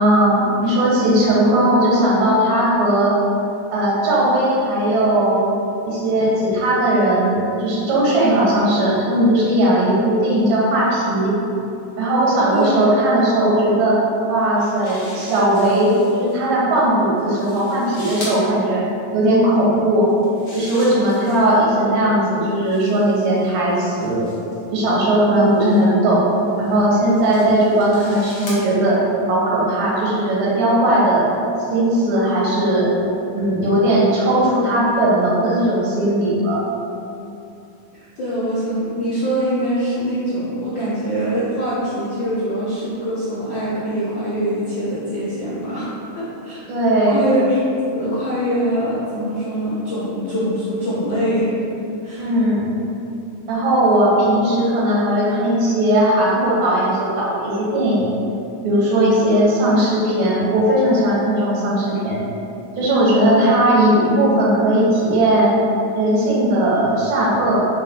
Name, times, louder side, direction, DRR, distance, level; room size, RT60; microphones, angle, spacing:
voice 1, 0.0-3.2 3.7-5.4 5.9-11.4 12.0-14.0 14.3-18.9 19.1-20.1 20.5-24.3 24.7-26.3 26.6-29.0 29.3-31.3 31.7-32.9 33.3-36.6 46.7-47.3 52.2-52.7 53.5-58.1 58.6-62.2 62.8-65.6 65.9-67.7, right 1 dB, 90° right, -6 dB, 3.2 m, -17 dB
sound 1, 14.4-16.3 17.2-18.4 20.0-21.6 22.5-24.6 25.5-25.8 26.6-28.6, left 1 dB, 50° left, 1.5 m, -39 dB
voice 2, 37.9-45.9 46.1-46.6 47.1-51.5 52.0-52.3 63.3-63.5, equal, 85° left, -10 dB, 1.0 m, -23 dB
7.9 x 3.0 x 4.5 m, 2.7 s
omnidirectional pair, 3.9 m